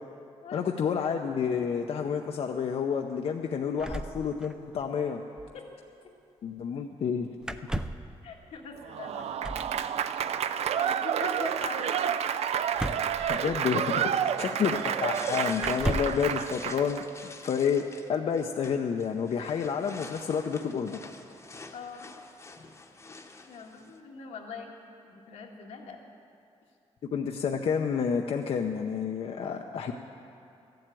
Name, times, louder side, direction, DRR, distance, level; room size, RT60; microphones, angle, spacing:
voice 1, 0.5-5.2 6.4-7.3 13.3-14.1 14.4-17.8 18.1-21.0 27.1-29.9, left 6 dB, 60° left, 3 dB, 0.6 m, -29 dB
sound 1, 3.8-4.9 5.1-5.2 5.4-5.6 7.4-8.1 9.4-9.8 12.7-13.9 14.8-14.9 15.6-16.3, right 1 dB, 5° right, 0.4 m, -34 dB
voice 2, 8.2-9.7 10.4-12.1 13.2-13.4 21.7-22.2 23.1-23.2 23.5-24.7 25.0-26.0, left 4 dB, 85° left, 0 dB, 1.7 m, -43 dB
Applause / Crowd, 8.9-17.0, right 8 dB, 70° right, 0.5 m, -30 dB
sound 2, 14.1-24.0, left 3 dB, 25° left, 0.9 m, -48 dB
13.5 x 7.8 x 9.0 m, 2.7 s
cardioid pair, 110°, 11 cm